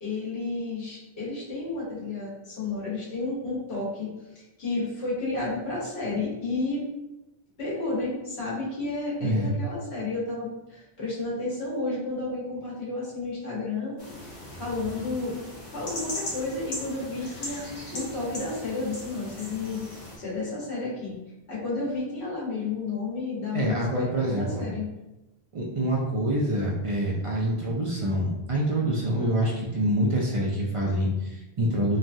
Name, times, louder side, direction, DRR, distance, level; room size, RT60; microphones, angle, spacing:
voice 1, 0.0-6.8 7.6-14.0 14.2-15.4 15.7-17.6 17.9-21.2 21.5-24.9, left 3 dB, 80° left, -7 dB, 1.3 m, -32 dB
voice 2, 9.2-9.5 23.5-24.6 25.5-32.0, right 1 dB, 55° right, -3 dB, 0.4 m, -26 dB
sound 1, 14.0-20.2, left 1 dB, 60° left, 0.9 m, -39 dB
3.1 x 2.2 x 2.5 m, 1.0 s
omnidirectional pair, 1.1 m